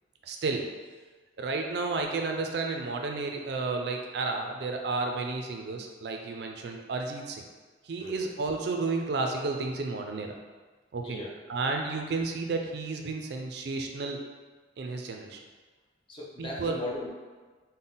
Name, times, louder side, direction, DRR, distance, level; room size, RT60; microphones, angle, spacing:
voice 1, 0.2-0.7 1.4-7.4 7.8-10.3 10.9-11.2 11.5-14.2 14.8-15.4 16.4-16.8, right 3 dB, 60° right, 3 dB, 0.4 m, -32 dB
voice 2, 16.1-17.1, left 1 dB, 25° left, -2 dB, 0.5 m, -37 dB
3.8 x 2.1 x 3.8 m, 1.4 s
head